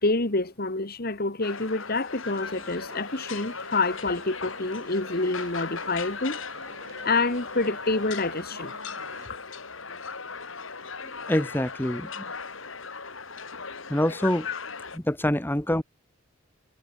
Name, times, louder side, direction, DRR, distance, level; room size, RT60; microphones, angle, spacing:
voice 1, 0.0-6.4 7.0-8.7 14.5-14.6, left 3 dB, 50° left, 2.1 m, -27 dB
sound 1, 1.4-15.0, left 5 dB, 75° left, 4.2 m, -38 dB
sound 2, 2.2-9.3, right 3 dB, 70° right, 4.2 m, -49 dB
voice 2, 11.3-12.2 13.9-14.5 14.9-15.8, left 1 dB, 10° left, 1.4 m, -25 dB
head